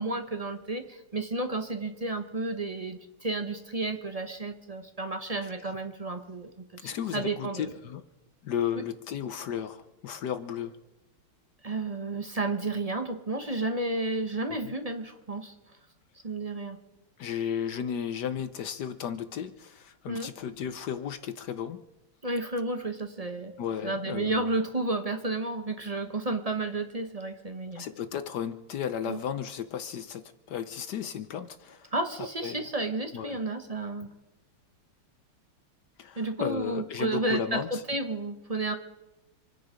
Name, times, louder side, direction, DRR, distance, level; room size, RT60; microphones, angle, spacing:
voice 1, 0.0-6.5 6.8-7.7 11.6-15.5 16.2-16.8 20.1-20.3 22.2-23.5 23.8-27.9 29.1-29.2 31.9-34.1 36.2-38.7, right 2 dB, 35° right, 7 dB, 0.6 m, -32 dB
voice 2, 6.8-8.0 8.4-10.7 14.5-14.7 17.2-21.8 23.6-24.5 27.7-31.9 32.2-32.6 33.1-33.4 36.0-37.8, left 8 dB, 65° left, 11 dB, 1.1 m, -34 dB
27.0 x 10.0 x 5.0 m, 1.0 s
omnidirectional pair, 2.4 m